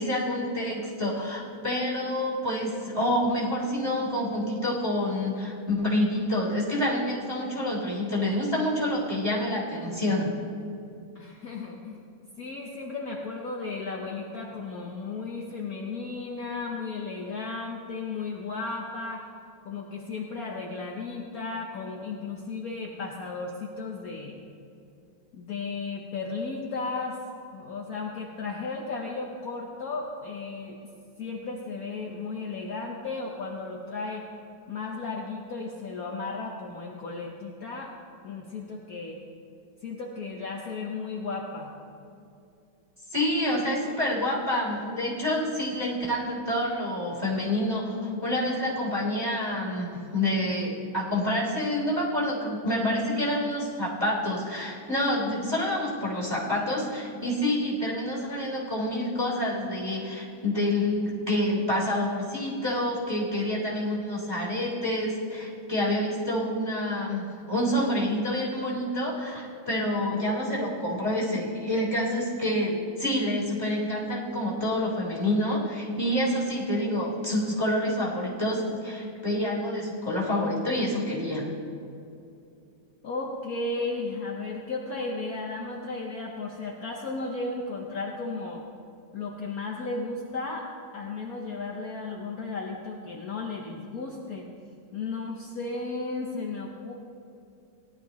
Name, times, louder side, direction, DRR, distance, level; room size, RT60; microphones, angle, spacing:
voice 1, 0.0-10.3 43.1-81.5, left 1 dB, 15° right, -4 dB, 3.3 m, -28 dB
voice 2, 11.1-12.0 12.4-19.3 19.6-24.4 25.3-27.2 27.5-30.8 31.2-34.3 34.7-37.9 38.2-39.2 39.8-41.7 83.0-88.6 89.1-90.7 90.9-94.5 94.9-96.9, left 3 dB, 55° left, -1 dB, 1.3 m, -34 dB
17.5 x 11.5 x 3.1 m, 2.6 s
omnidirectional pair, 2.1 m